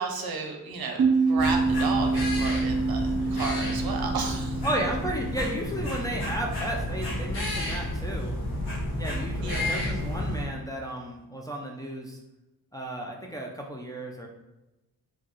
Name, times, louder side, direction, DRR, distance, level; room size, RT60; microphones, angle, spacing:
voice 1, 0.0-4.6 9.4-9.9, right 4 dB, 75° right, 3 dB, 0.7 m, -33 dB
sound 1, 1.0-6.3, right 4 dB, 45° right, 0.5 m, -27 dB
sound 2, 1.4-10.4, left 1 dB, 80° left, 1.5 m, -31 dB
voice 2, 4.6-8.4 9.0-12.2 12.7-14.3, right 1 dB, 10° left, -1 dB, 0.3 m, -33 dB
4.4 x 2.3 x 3.0 m, 0.99 s
wide cardioid pair, 150°, 37 cm